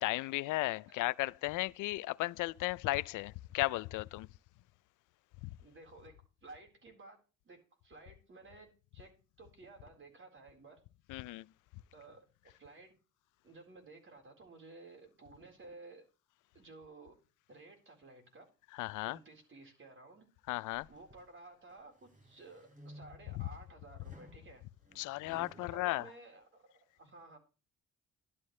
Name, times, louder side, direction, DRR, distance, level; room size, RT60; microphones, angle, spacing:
voice 1, 0.0-4.3 11.1-11.5 18.8-19.2 20.5-20.9 23.4-23.5 25.0-26.0, left 19 dB, 90° left, 0.5 m, -35 dB
voice 2, 5.6-7.2 7.4-10.8 11.9-13.0 13.4-16.0 16.5-17.2 17.5-18.5 19.0-20.3 20.9-24.7 25.6-27.4, right 3 dB, 40° right, 4.2 m, -55 dB
sound 1, 20.7-21.3 21.8-23.4 24.0-25.7, equal, 25° right, 3.4 m, -56 dB
12.0 x 11.0 x 3.2 m
cardioid pair, 90°, 30 cm